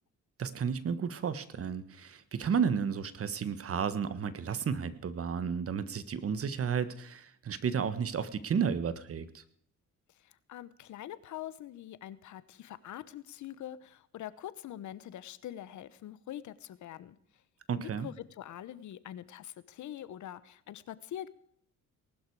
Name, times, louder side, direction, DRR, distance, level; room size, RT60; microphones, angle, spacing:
voice 1, 0.4-9.4 17.7-18.1, right 6 dB, 50° right, 13 dB, 1.5 m, -32 dB
voice 2, 10.2-17.2 17.8-21.3, left 12 dB, 70° left, 16 dB, 1.0 m, -44 dB
19.5 x 12.0 x 4.8 m, 0.64 s
cardioid pair, 90°, 30 cm